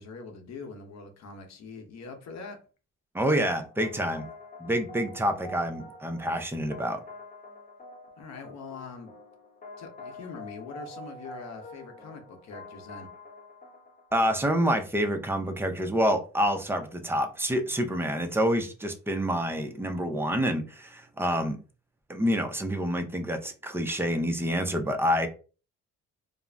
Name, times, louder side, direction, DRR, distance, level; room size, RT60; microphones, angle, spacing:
voice 1, 0.0-2.6 8.2-9.1 9.8-13.1, left 4 dB, 65° left, 0.8 m, -43 dB
voice 2, 3.1-4.3 4.6-7.0 14.1-21.6 22.1-25.3, equal, 10° right, 0.5 m, -27 dB
sound 1, 3.2-14.9, left 2 dB, 25° left, 0.8 m, -46 dB
2.4 x 2.0 x 3.2 m
cardioid pair, 90°, 30 cm